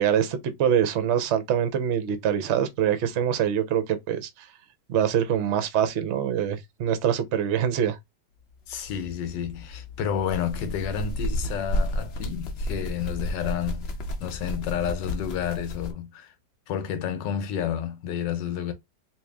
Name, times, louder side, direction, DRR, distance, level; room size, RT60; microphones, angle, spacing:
voice 1, 0.0-4.3 4.9-8.0, right 9 dB, 60° right, 0.7 m, -24 dB
voice 2, 8.7-13.9 14.2-16.3 16.7-18.7, left 8 dB, 85° left, 1.4 m, -30 dB
sound 1, 8.7-15.9, left 1 dB, 60° left, 0.7 m, -32 dB
3.0 x 2.6 x 3.4 m
omnidirectional pair, 1.9 m